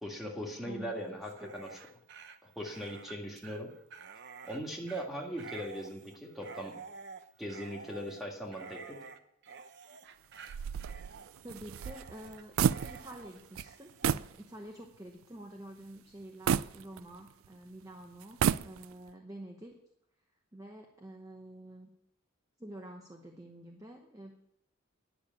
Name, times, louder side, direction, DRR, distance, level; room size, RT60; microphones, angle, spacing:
voice 1, 0.0-1.7 2.4-3.7 4.4-6.7 7.4-9.0, equal, ahead, -1 dB, 2.0 m, -39 dB
voice 2, 0.7-1.6 11.4-19.8 20.5-21.9 22.6-24.3, right 1 dB, 15° right, 3 dB, 0.9 m, -48 dB
Dog, 1.2-14.3, right 5 dB, 55° right, 0.7 m, -50 dB
sound 1, 10.5-13.3 13.5-13.7 14.0-14.3 14.8-14.9 16.5-17.5 18.2-19.1, right 8 dB, 75° right, 0.3 m, -31 dB
10.5 x 6.7 x 8.5 m, 0.80 s
head